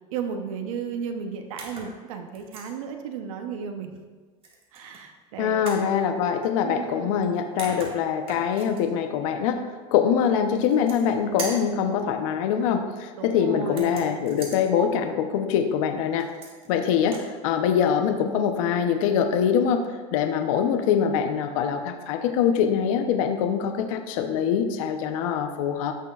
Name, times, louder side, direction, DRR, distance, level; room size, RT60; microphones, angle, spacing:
voice 1, 0.1-4.0 4.7-5.7 6.6-7.2 13.2-14.1, right 6 dB, 85° right, 5 dB, 0.9 m, -34 dB
sound 1, 1.6-1.9 2.3-2.7 4.4-5.0 5.6-5.9 7.2-7.3 7.6-8.8 10.6-11.1 11.4-11.7 13.7-14.6 16.2-16.7 17.0-17.3, right 3 dB, 30° right, 2.0 m, -39 dB
voice 2, 5.4-9.6 9.9-16.3 16.7-19.8 20.1-25.9, left 7 dB, 80° left, 6 dB, 0.9 m, -24 dB
14.5 x 6.7 x 2.5 m, 1.4 s
supercardioid pair, 110°, 17 cm